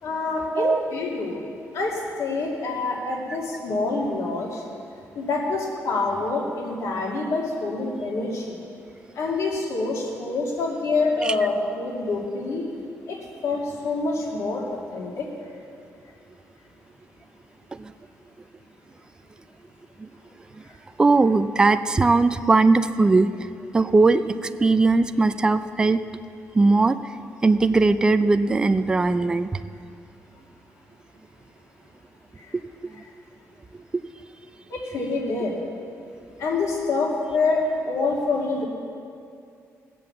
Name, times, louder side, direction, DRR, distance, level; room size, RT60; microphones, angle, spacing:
voice 1, 0.0-1.4 1.7-4.6 5.1-8.6 9.1-12.7 13.1-14.6 14.9-15.3 32.4-32.5 34.7-35.5 36.4-38.6, left 3 dB, 65° left, -2 dB, 2.4 m, -26 dB
voice 2, 21.0-23.3 23.7-26.0 26.5-27.0 27.4-29.6 33.9-34.0, right 3 dB, 15° right, 10 dB, 0.4 m, -19 dB
19.0 x 7.7 x 7.3 m, 2.4 s
cardioid pair, 170°, 5 cm